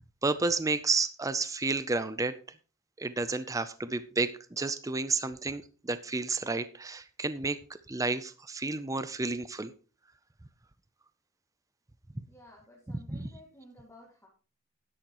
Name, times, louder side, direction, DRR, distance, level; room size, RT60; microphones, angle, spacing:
voice 1, 0.2-2.3 3.0-9.7 13.1-13.3, right 3 dB, 15° right, 13 dB, 0.5 m, -31 dB
voice 2, 12.3-14.3, left 1 dB, 10° left, -4 dB, 2.1 m, -54 dB
12.5 x 10.5 x 3.0 m, 0.37 s
head